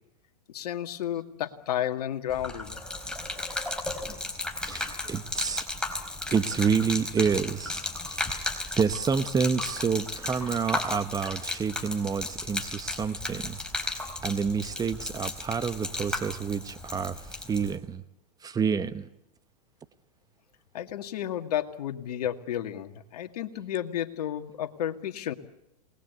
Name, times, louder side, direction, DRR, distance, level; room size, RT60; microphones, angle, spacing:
voice 1, 0.5-2.8 20.7-25.3, left 11 dB, 70° left, 6 dB, 2.2 m, -32 dB
Gurgling / Liquid, 2.3-17.8, left 2 dB, 5° left, 4.1 m, -35 dB
voice 2, 4.6-5.6 6.3-8.4 8.8-13.9 14.2-17.2 17.5-18.0 18.4-19.0, right 6 dB, 20° right, 11 dB, 1.2 m, -28 dB
28.0 x 20.5 x 8.2 m, 0.82 s
hypercardioid pair, 110°, 21 cm